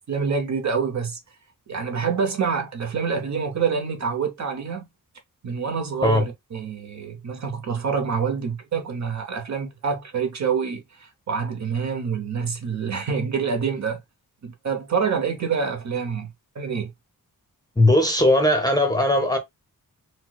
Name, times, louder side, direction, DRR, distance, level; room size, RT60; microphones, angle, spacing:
voice 1, 0.1-1.2 1.7-4.9 5.4-10.8 11.3-14.0 14.4-16.9, right 6 dB, 55° right, 0.8 m, -26 dB
voice 2, 17.8-19.4, left 1 dB, 10° left, 0.6 m, -18 dB
4.4 x 2.0 x 2.2 m
wide cardioid pair, 155°, 34 cm